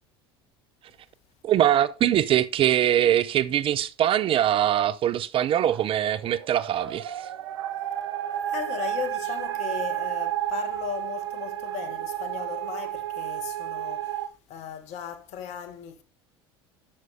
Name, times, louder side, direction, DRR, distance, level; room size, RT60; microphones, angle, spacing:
voice 1, 1.4-7.3, right 11 dB, 45° right, 0.5 m, -22 dB
sound 1, 5.4-14.3, right 13 dB, 80° right, 0.7 m, -32 dB
voice 2, 8.5-16.0, left 8 dB, 60° left, 1.5 m, -36 dB
11.5 x 6.2 x 3.4 m
hypercardioid pair, 80°, 13 cm